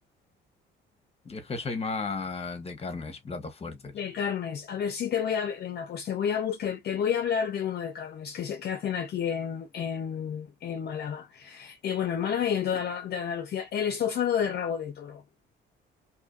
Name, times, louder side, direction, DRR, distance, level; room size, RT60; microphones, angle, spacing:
voice 1, 1.2-4.0, left 4 dB, 30° left, 0.9 m, -34 dB
voice 2, 3.9-15.2, left 8 dB, 55° left, 0.5 m, -30 dB
2.7 x 2.5 x 2.3 m
cardioid pair, 90°, 20 cm